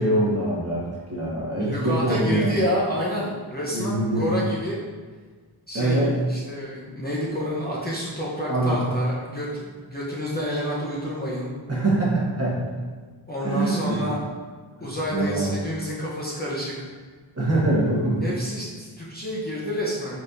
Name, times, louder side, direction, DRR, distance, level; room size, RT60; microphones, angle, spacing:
voice 1, 0.0-2.5 3.7-4.4 5.7-6.1 8.5-8.8 11.7-12.6 13.4-14.0 14.8-15.6 17.4-18.3, right 2 dB, 30° right, -5 dB, 1.2 m, -24 dB
voice 2, 1.6-4.8 5.7-11.5 13.3-14.2 14.8-16.7 18.2-20.2, equal, 20° left, -7 dB, 0.7 m, -29 dB
4.1 x 4.0 x 2.5 m, 1.5 s
wide cardioid pair, 85°, 48 cm